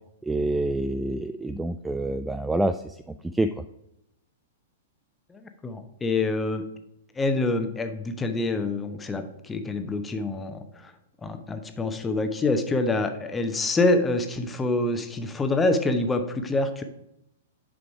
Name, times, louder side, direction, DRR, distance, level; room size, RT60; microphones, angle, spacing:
voice 1, 0.2-3.0 3.3-3.5, right 2 dB, 10° right, 12 dB, 0.3 m, -26 dB
voice 2, 5.3-6.6 7.2-10.9 11.2-16.8, left 2 dB, 15° left, 7 dB, 0.9 m, -26 dB
6.8 x 5.1 x 4.7 m, 0.82 s
figure-of-eight pair, 105°, 0 cm